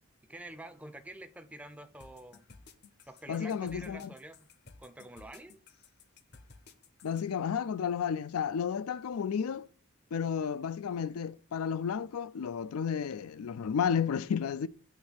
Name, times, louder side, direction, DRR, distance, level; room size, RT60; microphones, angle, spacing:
voice 1, 0.3-2.4 3.1-4.4 4.8-5.6, right 1 dB, 5° right, 0.5 m, -47 dB
sound 1, 2.0-7.2, left 3 dB, 45° left, 0.7 m, -55 dB
voice 2, 3.3-4.1 7.0-9.7 10.1-14.7, left 7 dB, 80° left, 0.4 m, -32 dB
8.1 x 3.1 x 6.1 m
head